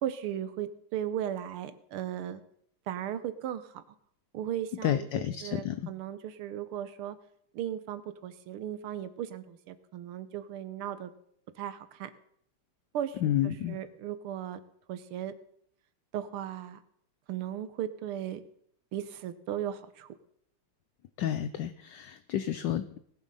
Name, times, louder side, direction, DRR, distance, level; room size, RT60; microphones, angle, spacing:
voice 1, 0.0-2.4 2.9-3.8 4.3-7.2 7.5-11.1 11.6-12.1 12.9-14.6 14.9-15.3 16.1-16.8 17.3-18.4 18.9-20.1, right 10 dB, 85° right, 13 dB, 1.8 m, -36 dB
voice 2, 4.8-5.9 13.2-13.8 21.2-23.0, left 11 dB, 70° left, 12 dB, 1.1 m, -30 dB
19.0 x 7.4 x 5.5 m, 0.67 s
omnidirectional pair, 2.4 m